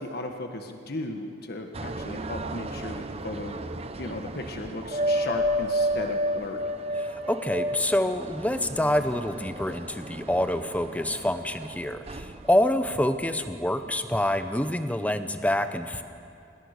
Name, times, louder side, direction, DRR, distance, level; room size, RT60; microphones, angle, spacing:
voice 1, 0.0-3.6 4.0-6.7, left 2 dB, 50° left, 4 dB, 1.4 m, -36 dB
sound 1, 1.7-14.0 14.3-14.7, equal, 30° right, 0.8 m, -32 dB
voice 2, 6.9-16.0, left 1 dB, 5° left, 9 dB, 0.8 m, -26 dB
27.5 x 20.5 x 6.7 m, 2.8 s
head